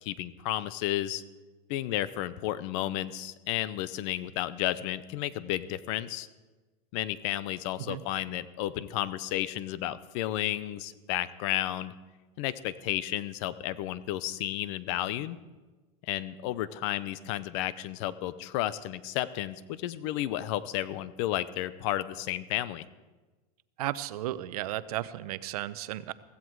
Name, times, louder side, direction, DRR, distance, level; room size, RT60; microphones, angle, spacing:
voice 1, 0.0-1.2 1.7-6.3 6.9-11.9 12.4-15.4 16.0-22.8, left 14 dB, 50° left, 16 dB, 0.7 m, -32 dB
voice 2, 23.8-26.1, right 14 dB, 70° right, 16 dB, 0.8 m, -34 dB
15.5 x 15.5 x 4.7 m, 1.2 s
supercardioid pair, 150°, 20 cm